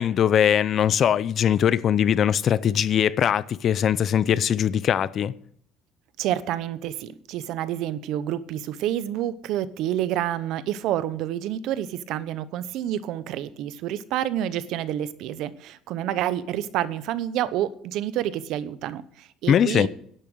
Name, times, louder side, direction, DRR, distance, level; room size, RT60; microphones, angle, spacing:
voice 1, 0.0-5.3 19.5-19.9, left 9 dB, 40° left, 0.5 m, -21 dB
voice 2, 6.2-19.9, right 12 dB, 65° right, 0.8 m, -28 dB
11.0 x 8.9 x 6.3 m
cardioid pair, 140°, 0 cm